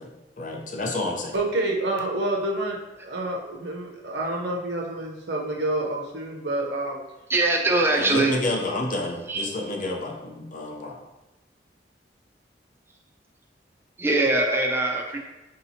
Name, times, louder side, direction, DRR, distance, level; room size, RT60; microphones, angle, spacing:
voice 1, 0.0-1.4 7.9-11.0, left 2 dB, 45° left, 0 dB, 0.6 m, -30 dB
voice 2, 1.3-7.0 8.1-8.4, right 1 dB, 70° right, 0 dB, 0.7 m, -28 dB
voice 3, 7.3-8.3 9.3-9.4 14.0-15.2, right 2 dB, 15° right, 0 dB, 0.4 m, -22 dB
4.8 x 2.8 x 2.7 m, 1.0 s
head